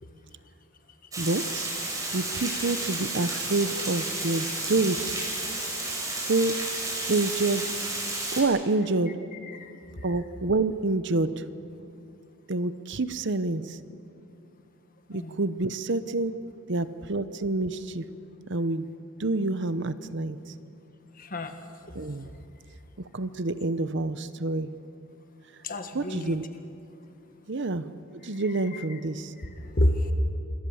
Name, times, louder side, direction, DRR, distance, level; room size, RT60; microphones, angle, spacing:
Water, 1.1-8.4, right 2 dB, 15° right, 5.5 m, -32 dB
voice 1, 1.2-1.7 2.1-5.2 6.3-6.6 7.1-7.6 8.4-9.2 10.0-11.4 12.5-13.8 15.1-16.3 16.7-18.0 18.5-18.9 19.2-20.4 21.9-22.3 23.1-24.7 25.9-26.5 27.5-27.9 28.2-29.3, right 2 dB, 55° right, 13 dB, 0.8 m, -27 dB
voice 2, 21.2-21.5 25.6-26.4 29.7-30.1, left 1 dB, 40° left, 7 dB, 1.7 m, -28 dB
26.5 x 22.0 x 7.2 m, 2.6 s
head